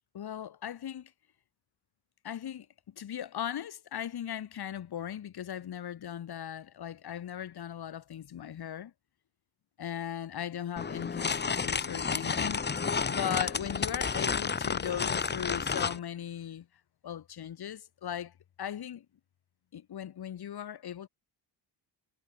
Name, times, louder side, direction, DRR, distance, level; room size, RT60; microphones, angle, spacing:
voice 1, 0.1-1.1 2.2-2.7 3.0-8.9 9.8-12.6 13.1-16.7 17.0-18.3 18.6-19.0 19.7-21.1, left 10 dB, 60° left, 2.8 m, -38 dB
sound 1, 10.8-16.0, left 5 dB, 25° left, 0.9 m, -31 dB
cardioid pair, 120°, 44 cm